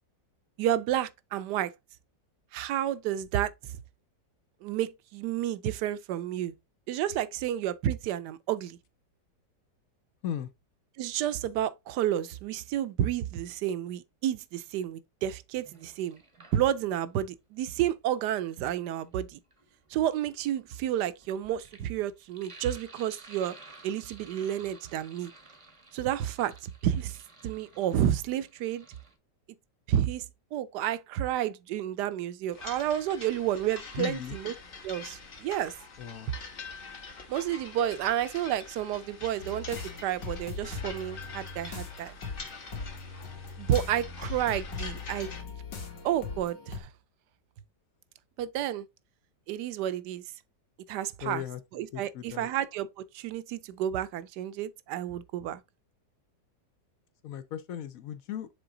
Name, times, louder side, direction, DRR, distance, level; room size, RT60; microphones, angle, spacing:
voice 1, 0.6-1.7 2.5-3.5 4.6-6.5 6.9-8.8 11.0-16.2 16.5-19.4 19.9-23.5 23.8-25.3 25.9-27.2 27.4-28.9 29.9-30.3 30.5-34.5 34.8-35.7 37.3-42.1 43.6-45.3 46.0-46.9 48.4-48.9 49.5-50.2 50.9-51.4 51.8-55.6, right 11 dB, 75° right, 1.2 m, -30 dB
Sink (filling or washing), 15.5-17.1 18.2-29.1, right 3 dB, 25° right, 0.7 m, -54 dB
sound 1, 32.5-45.4, left 4 dB, 35° left, 1.0 m, -45 dB
voice 2, 34.0-34.4 36.0-36.3 51.2-52.5 57.2-58.5, left 9 dB, 70° left, 0.9 m, -37 dB
sound 2, 39.4-46.8, left 4 dB, 85° left, 2.2 m, -40 dB
6.9 x 3.7 x 3.7 m
omnidirectional pair, 1.9 m